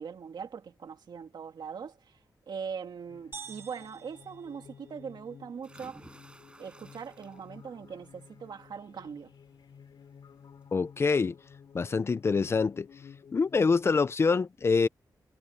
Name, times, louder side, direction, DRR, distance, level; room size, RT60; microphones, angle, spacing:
voice 1, 0.0-2.2 2.5-6.0 6.6-9.3, right 6 dB, 75° right, 2.1 m, -41 dB
sound 1, 3.1-13.9, left 7 dB, 85° left, 2.7 m, -54 dB
sound 2, 3.3-5.3, right 5 dB, 35° right, 1.5 m, -48 dB
sound 3, 5.6-7.7 8.1-8.6 9.9-10.0 10.4-10.5, right 2 dB, 15° right, 7.4 m, -54 dB
voice 2, 10.7-11.4 11.7-12.9 13.3-14.9, left 4 dB, 35° left, 0.4 m, -25 dB
wide cardioid pair, 165°, 7 cm